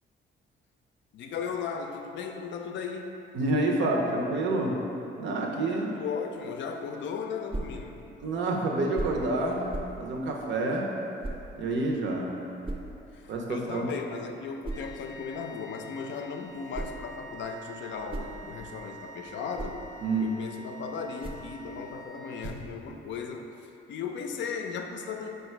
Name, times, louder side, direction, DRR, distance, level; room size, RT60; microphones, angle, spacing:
voice 1, 1.1-3.1 5.7-8.0 13.1-19.8 20.2-25.3, left 5 dB, 65° left, 4 dB, 0.4 m, -36 dB
voice 2, 3.3-4.8 5.2-5.9 8.2-9.7 10.0-10.9 11.6-12.4 13.3-13.9 20.0-20.3, right 2 dB, 70° right, 0 dB, 0.7 m, -28 dB
sound 1, 7.5-7.8 8.9-9.3 9.7-10.0 11.2-11.5 12.6-12.9 14.6-14.9 16.5-17.1 17.8-18.8 19.3-19.8 21.1-21.6 22.4-22.8, right 2 dB, 25° right, 0.5 m, -37 dB
sound 2, 14.7-22.6, right 2 dB, 15° left, 0.7 m, -48 dB
4.9 x 2.3 x 4.4 m, 2.8 s
cardioid pair, 90°, 20 cm